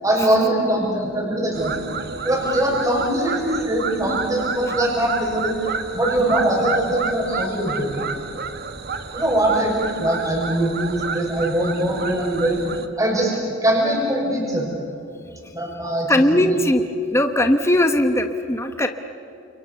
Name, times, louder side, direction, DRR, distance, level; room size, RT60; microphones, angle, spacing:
voice 1, 0.0-1.8 2.2-5.6 5.9-8.0 9.1-12.7 13.0-14.7 15.5-16.1 16.5-16.6, right 1 dB, 15° right, -1 dB, 6.4 m, -22 dB
sound 1, 1.5-12.9, right 5 dB, 50° right, 1.5 m, -30 dB
voice 2, 16.1-16.8 17.1-18.9, left 1 dB, 15° left, 6 dB, 1.1 m, -19 dB
30.0 x 28.5 x 7.0 m, 2.8 s
head